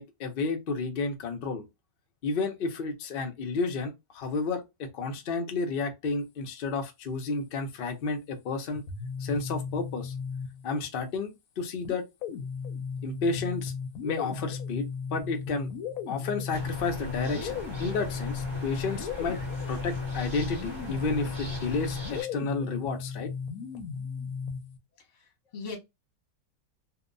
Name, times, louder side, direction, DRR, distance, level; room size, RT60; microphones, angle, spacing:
voice 1, 0.0-1.7 2.2-8.8 9.2-10.1 10.6-12.0 13.0-13.7 14.0-15.7 16.1-19.4 19.7-23.3, left 4 dB, 85° left, 0.4 m, -31 dB
sound 1, 8.8-10.9 11.8-24.8, left 6 dB, 70° left, 0.9 m, -36 dB
sound 2, 16.5-22.2, equal, 20° right, 1.0 m, -39 dB
voice 2, 25.0-25.8, left 4 dB, 35° left, 0.7 m, -41 dB
2.8 x 2.1 x 2.5 m
omnidirectional pair, 1.8 m